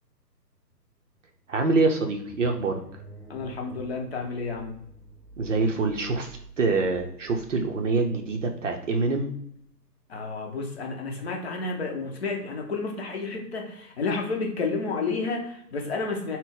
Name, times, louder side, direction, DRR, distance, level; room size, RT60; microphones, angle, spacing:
sound 1, 1.3-9.7, right 1 dB, 10° left, 0.7 m, -49 dB
voice 1, 1.5-2.8 5.4-9.3, right 3 dB, 50° right, 3 dB, 0.5 m, -25 dB
voice 2, 3.3-4.8 10.1-16.4, left 4 dB, 40° left, 1 dB, 0.7 m, -31 dB
3.9 x 2.0 x 3.6 m, 0.70 s
figure-of-eight pair, 145°, 50 cm